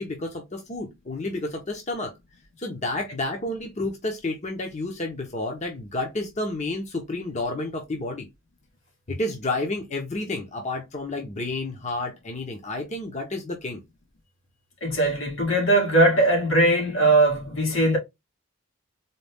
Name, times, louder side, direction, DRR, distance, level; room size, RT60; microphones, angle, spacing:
voice 1, 0.0-2.1 2.6-8.3 9.1-13.8, left 2 dB, 35° left, 0.8 m, -30 dB
voice 2, 14.8-18.0, right 2 dB, 85° left, 1.9 m, -20 dB
4.2 x 2.3 x 3.4 m
head